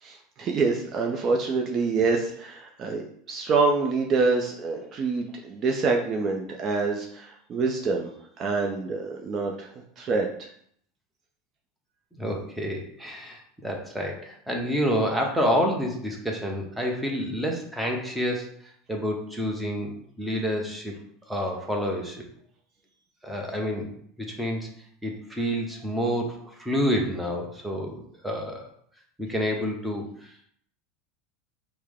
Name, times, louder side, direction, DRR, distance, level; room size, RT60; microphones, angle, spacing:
voice 1, 0.0-3.0 3.3-8.1 8.4-9.7 10.0-10.5, right 4 dB, 40° right, 1 dB, 0.6 m, -26 dB
voice 2, 12.2-18.5 18.9-20.9 21.3-22.3 23.2-23.9 24.2-24.7 25.0-28.7 29.2-30.3, equal, 5° right, 0 dB, 1.0 m, -28 dB
4.5 x 2.1 x 3.6 m, 0.64 s
hypercardioid pair, 85°, 0 cm